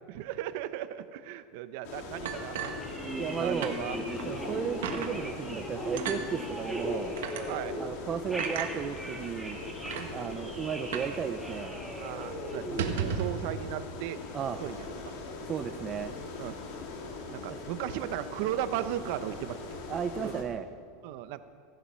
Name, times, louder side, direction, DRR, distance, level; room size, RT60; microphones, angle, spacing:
voice 1, 0.1-2.7 3.4-4.0 4.4-4.5 7.5-7.8 10.0-10.3 12.0-14.2 14.6-15.2 16.4-16.6 17.3-19.7 20.2-20.4 21.0-21.4, right 12 dB, 60° right, 12 dB, 0.8 m, -36 dB
sound 1, 1.8-20.4, left 3 dB, 65° left, 2.6 m, -41 dB
sound 2, 2.3-7.9 8.1-13.1, right 1 dB, 5° right, 1.7 m, -39 dB
sound 3, 2.3-3.3 3.6-3.8 4.2-4.3 4.8-5.1 6.0-6.2 7.2-7.4 8.4-8.7 9.5-9.6 9.9-10.1 10.9-11.2 11.4-11.5 11.9-12.1 12.6-13.4, right 8 dB, 90° right, 1.6 m, -34 dB
voice 2, 3.1-3.7 4.2-7.1 7.8-9.6 10.1-11.8 14.3-14.6 15.5-16.1 17.5-17.6 19.9-20.7, right 7 dB, 25° right, 9 dB, 0.6 m, -34 dB
16.5 x 12.0 x 5.6 m, 2.2 s
supercardioid pair, 145°, 0 cm